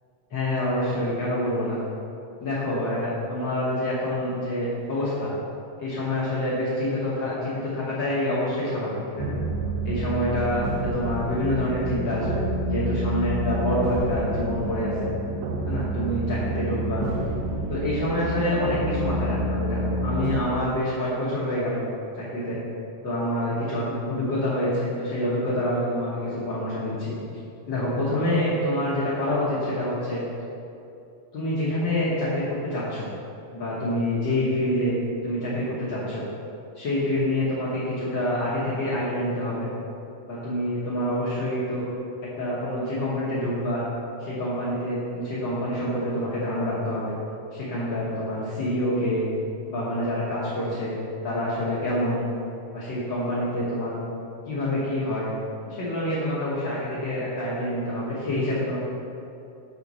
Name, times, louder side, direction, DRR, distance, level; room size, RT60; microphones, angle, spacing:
voice 1, 0.3-1.8 2.4-5.3 5.8-9.4 9.8-15.1 15.6-17.0 17.7-21.8 22.2-22.6 23.0-27.4 27.7-30.2 31.3-32.4 32.7-33.1 33.5-34.9 35.2-36.2 36.7-39.7 40.3-41.8 42.4-43.8 44.2-47.1 47.5-49.3 49.7-50.9 51.2-52.2 52.7-54.0 54.5-55.3 55.7-58.8, left 1 dB, 80° left, -9 dB, 1.0 m, -27 dB
sound 1, 9.2-20.4, right 2 dB, 80° right, 1.5 m, -28 dB
6.5 x 4.0 x 6.1 m, 2.7 s
omnidirectional pair, 3.9 m